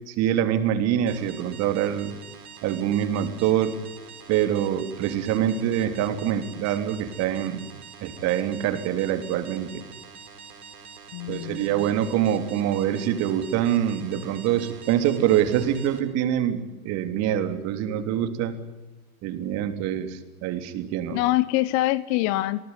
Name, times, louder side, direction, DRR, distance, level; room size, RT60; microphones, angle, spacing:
voice 1, 0.1-2.2 2.6-3.7 4.3-7.6 8.0-9.8 11.3-18.5 19.2-21.2, right 10 dB, 35° right, 9 dB, 3.3 m, -25 dB
sound 1, 1.1-16.0, right 7 dB, 90° right, 5.1 m, -45 dB
voice 2, 11.1-11.7 21.1-22.6, left 16 dB, 35° left, 19 dB, 1.0 m, -24 dB
28.5 x 19.0 x 9.9 m, 1.0 s
hypercardioid pair, 120°, 43 cm